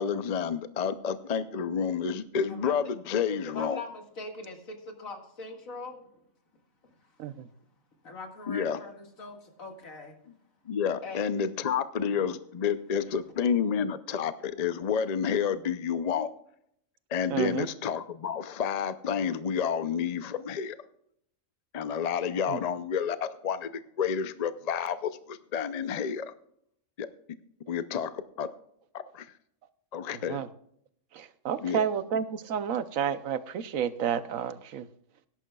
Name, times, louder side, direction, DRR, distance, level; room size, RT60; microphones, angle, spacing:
voice 1, 0.0-3.8 8.5-8.8 10.7-16.3 17.1-20.8 21.7-23.7 24.0-26.3 27.0-27.1 27.7-28.5 28.9-29.3 29.9-30.4 31.6-31.8, left 7 dB, 55° left, 13 dB, 0.4 m, -30 dB
voice 2, 3.3-6.1 8.0-10.1 11.0-11.3 13.1-13.2, left 3 dB, 75° left, 4 dB, 2.3 m, -42 dB
voice 3, 17.3-17.7 22.5-22.6 30.3-30.5 31.1-34.9, right 8 dB, 75° right, 13 dB, 1.2 m, -30 dB
18.5 x 10.5 x 2.3 m, 0.70 s
omnidirectional pair, 1.4 m